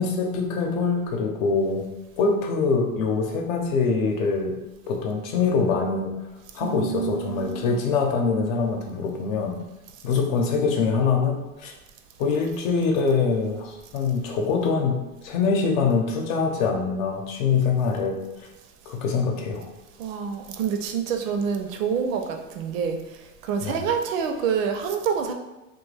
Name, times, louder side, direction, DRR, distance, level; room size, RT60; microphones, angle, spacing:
voice 1, 0.0-1.9 2.2-4.5 4.9-6.1 6.5-9.5 10.0-11.7 12.2-18.2 18.9-19.7 23.6-23.8, left 4 dB, 70° left, 1 dB, 0.8 m, -24 dB
voice 2, 6.6-7.8 20.0-23.0 23.4-25.3, right 6 dB, 70° right, 5 dB, 0.6 m, -27 dB
2.5 x 2.3 x 3.2 m, 1.1 s
supercardioid pair, 120°, 40 cm